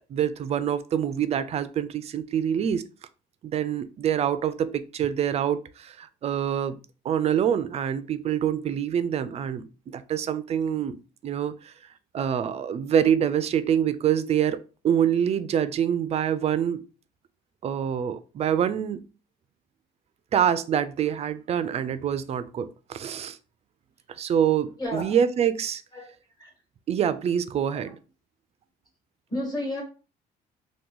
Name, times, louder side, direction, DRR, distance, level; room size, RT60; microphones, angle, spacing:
voice 1, 0.1-2.8 3.4-6.8 7.0-11.0 11.2-11.7 12.1-14.6 14.8-16.8 17.6-19.0 20.3-23.4 24.2-25.8 26.9-28.0, right 9 dB, 40° right, 0.4 m, -25 dB
voice 2, 24.8-25.1 25.9-26.0 26.4-26.5 29.3-29.8, left 1 dB, 25° left, 1.4 m, -31 dB
2.9 x 2.2 x 3.7 m
cardioid pair, 110°, 17 cm